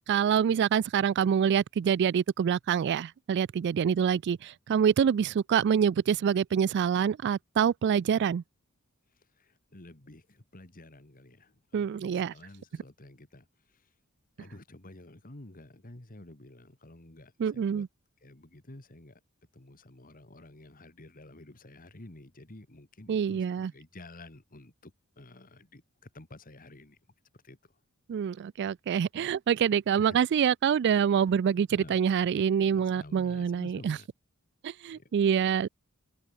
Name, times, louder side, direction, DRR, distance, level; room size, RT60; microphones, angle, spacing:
voice 1, 0.1-8.4 11.7-12.3 17.4-17.9 23.1-23.7 28.1-34.0 34.6-35.7, right 7 dB, 50° right, 0.3 m, -26 dB
voice 2, 9.1-13.9 14.4-17.9 18.2-19.2 19.5-27.0 27.3-27.8 30.0-30.3 31.7-34.1 34.9-35.1, left 1 dB, 40° left, 2.0 m, -51 dB
head